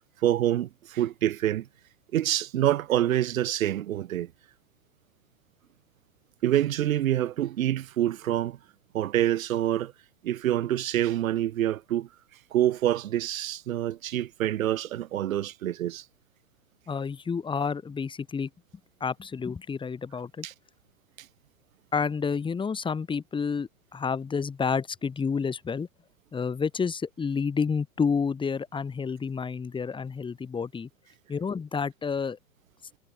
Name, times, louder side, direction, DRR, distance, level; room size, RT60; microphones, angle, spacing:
voice 1, 0.2-1.7 2.1-4.3 6.4-8.6 8.9-9.9 10.2-12.1 12.5-16.0 20.4-20.5, right 12 dB, 90° right, 0.6 m, -26 dB
voice 2, 16.9-18.5 19.0-20.5 21.9-25.9 26.3-30.9 31.3-32.4, left 5 dB, 10° left, 1.9 m, -29 dB
hypercardioid pair, 120°, 40 cm